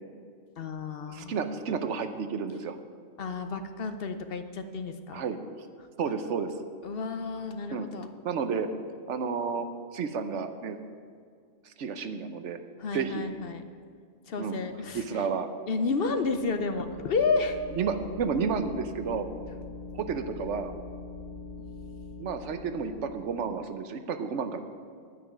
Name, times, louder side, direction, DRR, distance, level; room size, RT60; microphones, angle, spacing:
voice 1, 0.6-1.4 3.2-5.2 6.8-8.1 12.8-13.6 14.3-15.0 15.3-17.6, left 4 dB, 55° left, 8 dB, 0.8 m, -31 dB
voice 2, 1.1-2.8 5.1-5.4 6.0-6.5 7.7-7.9 8.2-8.7 9.1-9.7 9.9-10.8 11.6-12.6 12.9-13.2 14.4-14.7 14.9-15.5 17.8-19.3 19.9-20.7 22.2-24.6, right 5 dB, 75° right, 9 dB, 1.1 m, -31 dB
sound 1, 16.0-23.7, left 3 dB, 35° left, 3.2 m, -43 dB
10.0 x 9.4 x 6.1 m, 2.1 s
omnidirectional pair, 1.3 m